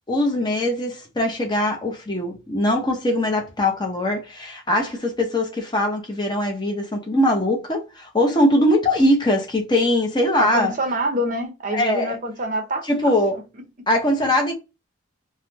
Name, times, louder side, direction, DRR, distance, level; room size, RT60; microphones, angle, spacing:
voice 1, 0.1-10.7 11.7-12.2 12.9-13.4 13.9-14.5, left 1 dB, 20° left, 0.8 m, -21 dB
voice 2, 10.4-13.1, right 1 dB, 40° right, 0.7 m, -26 dB
3.5 x 2.2 x 2.8 m
head